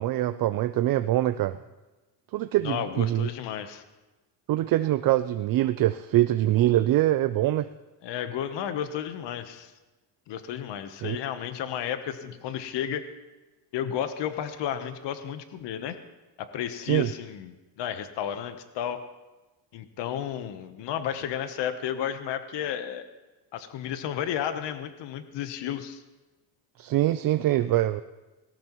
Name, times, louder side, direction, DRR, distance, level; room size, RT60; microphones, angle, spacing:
voice 1, 0.0-1.6 2.3-3.3 4.5-7.7 11.0-11.2 16.9-17.1 26.8-28.0, right 14 dB, 50° right, 12 dB, 0.5 m, -24 dB
voice 2, 2.6-3.8 8.0-9.7 10.3-13.0 13.7-16.0 16.4-19.0 19.7-23.0 23.5-26.0, left 9 dB, 65° left, 9 dB, 1.1 m, -32 dB
18.5 x 17.5 x 3.1 m, 1.1 s
cardioid pair, 145°, 45 cm